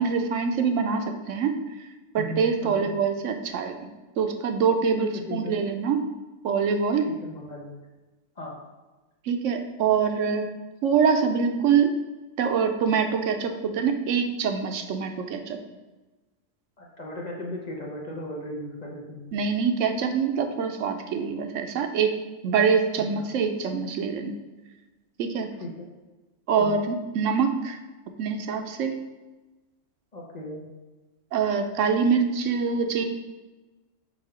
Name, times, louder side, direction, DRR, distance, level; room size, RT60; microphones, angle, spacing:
voice 1, 0.0-1.6 2.1-6.1 6.4-7.1 9.3-10.5 10.8-11.9 12.4-15.6 19.3-22.2 22.4-24.3 25.2-25.5 26.5-27.8 28.2-29.0 31.3-33.0, right 6 dB, 80° right, 6 dB, 1.0 m, -24 dB
voice 2, 2.2-3.0 5.0-5.6 7.0-7.8 8.3-8.5 16.8-19.3 23.0-23.3 25.6-25.7 26.5-26.8 30.1-30.6 32.0-32.1, equal, 35° left, -2 dB, 1.1 m, -37 dB
7.3 x 2.8 x 4.9 m, 1.2 s
omnidirectional pair, 1.3 m